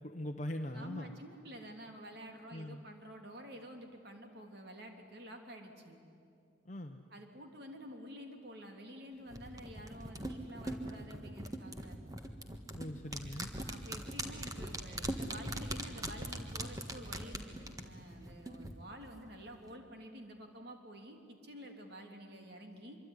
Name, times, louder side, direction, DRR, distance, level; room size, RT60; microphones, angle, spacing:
voice 1, 0.0-1.1 2.5-2.8 6.6-7.0 12.7-13.5, left 1 dB, 40° left, 4 dB, 0.9 m, -41 dB
voice 2, 0.7-6.0 7.1-12.0 13.6-23.0, equal, 55° right, 3 dB, 3.1 m, -50 dB
sound 1, 9.3-18.7 19.0-19.1, right 1 dB, 20° right, 1.5 m, -41 dB
25.0 x 23.5 x 10.0 m, 2.4 s
head